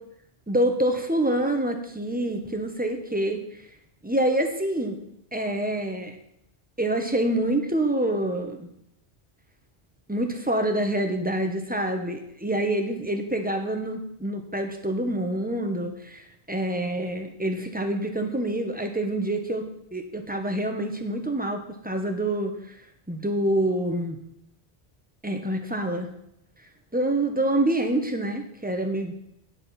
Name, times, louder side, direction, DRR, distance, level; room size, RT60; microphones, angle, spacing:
voice 1, 0.5-3.4 4.0-5.0 5.3-6.2 6.8-8.7 10.1-19.7 19.9-22.6 23.1-24.2 25.2-26.1 26.9-29.1, right 1 dB, 10° right, 4 dB, 1.2 m, -26 dB
9.1 x 8.2 x 5.8 m, 0.76 s
omnidirectional pair, 1.0 m